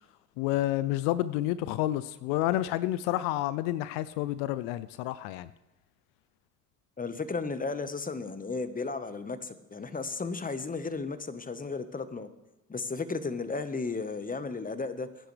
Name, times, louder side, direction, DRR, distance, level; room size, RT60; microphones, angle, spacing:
voice 1, 0.4-5.5, left 15 dB, 80° left, 0.5 m, -29 dB
voice 2, 7.0-12.3 12.7-15.1, left 4 dB, 20° left, 1.3 m, -34 dB
21.0 x 10.5 x 3.4 m
hypercardioid pair, 65°, 37 cm